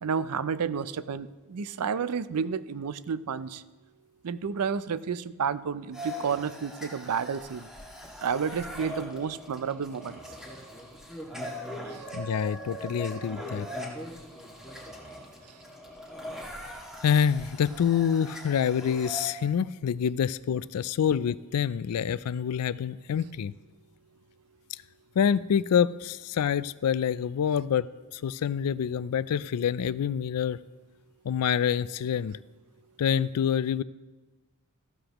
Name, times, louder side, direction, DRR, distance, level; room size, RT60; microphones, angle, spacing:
voice 1, 0.0-3.6 4.2-7.7 8.2-10.2, right 6 dB, 85° right, 15 dB, 0.5 m, -31 dB
sound 1, 5.9-19.3, equal, 5° right, 2.0 m, -41 dB
voice 2, 12.1-13.7 17.0-23.5 25.2-30.6 31.2-32.4 33.0-33.8, left 8 dB, 85° left, 18 dB, 0.4 m, -26 dB
14.5 x 13.0 x 3.0 m, 1.2 s
head